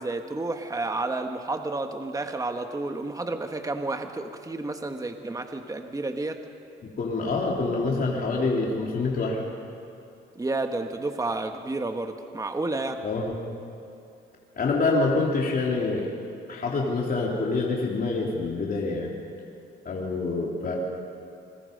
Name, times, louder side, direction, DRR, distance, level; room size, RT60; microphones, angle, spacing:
voice 1, 0.0-6.4 10.4-13.0, right 2 dB, 15° right, 6 dB, 1.4 m, -31 dB
voice 2, 7.0-9.4 13.0-13.3 14.6-16.1 16.5-19.2 19.8-20.8, left 3 dB, 45° left, -2 dB, 3.3 m, -26 dB
27.0 x 22.0 x 5.3 m, 2.6 s
cardioid pair, 90°, 20 cm